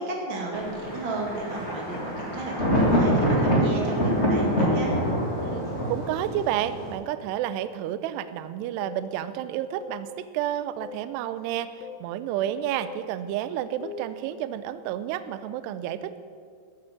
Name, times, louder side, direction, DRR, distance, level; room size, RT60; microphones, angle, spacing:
voice 1, 0.0-4.9, right 2 dB, 60° right, -1 dB, 1.3 m, -33 dB
Thunder, 0.5-6.9, equal, 25° left, 1.5 m, -25 dB
voice 2, 5.4-16.2, right 11 dB, 85° right, 12 dB, 2.4 m, -30 dB
sound 1, 8.8-9.1 9.8-10.1 10.8-11.1 11.8-12.1 12.8-13.1 13.8-14.1, left 6 dB, 90° left, 3.3 m, -41 dB
14.5 x 7.8 x 7.6 m, 2.1 s
omnidirectional pair, 5.4 m